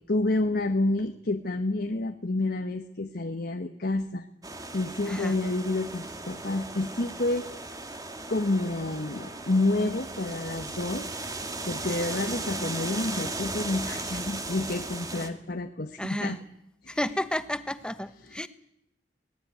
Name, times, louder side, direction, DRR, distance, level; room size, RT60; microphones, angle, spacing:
voice 1, 0.1-4.3 4.7-7.5 8.3-11.1 11.7-16.4 16.8-17.0, left 2 dB, 60° left, 5 dB, 1.3 m, -29 dB
sound 1, 4.4-15.3, right 2 dB, 20° right, 1.9 m, -36 dB
voice 2, 5.0-5.4 16.0-16.4 16.9-18.5, left 1 dB, 5° left, 12 dB, 1.1 m, -31 dB
22.5 x 18.5 x 9.2 m, 0.77 s
head